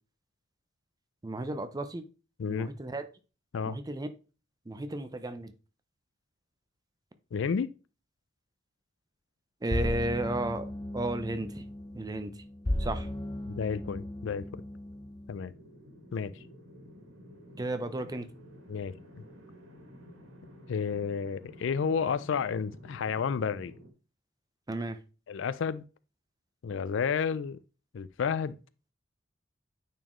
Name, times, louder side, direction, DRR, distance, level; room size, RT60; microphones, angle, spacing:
voice 1, 1.2-2.0 2.5-3.1 3.7-4.1 4.7-5.5 9.6-11.6 11.9-12.3 12.8-13.1 17.6-18.3 24.7-25.0, right 1 dB, 20° right, 0.6 m, -33 dB
voice 2, 2.4-2.7 3.5-3.8 7.3-7.7 13.5-14.6 15.3-15.5 16.1-16.3 18.7-18.9 20.7-23.7 25.3-25.8 26.6-27.6 27.9-28.6, left 6 dB, 65° left, 0.4 m, -31 dB
sound 1, 9.7-15.4, left 1 dB, 20° left, 0.7 m, -36 dB
sound 2, 15.3-23.9, equal, 85° right, 1.9 m, -52 dB
9.1 x 4.3 x 3.1 m
head